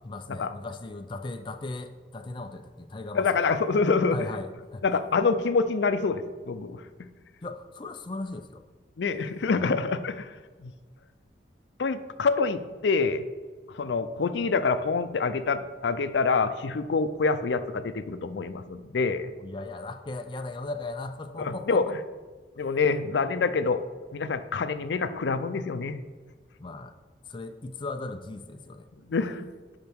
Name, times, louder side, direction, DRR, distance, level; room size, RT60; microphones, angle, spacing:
voice 1, 0.0-3.5 4.1-4.8 7.4-8.6 9.5-9.8 19.4-21.9 26.6-26.9 27.3-28.9, left 2 dB, 25° left, 6 dB, 0.4 m, -37 dB
voice 2, 3.1-4.2 4.8-7.1 9.0-10.3 10.6-10.7 11.8-13.2 13.7-19.3 21.4-21.9 22.6-23.8 24.1-26.0 29.1-29.5, left 4 dB, 85° left, 11 dB, 0.5 m, -26 dB
10.5 x 5.7 x 3.5 m, 1.4 s
head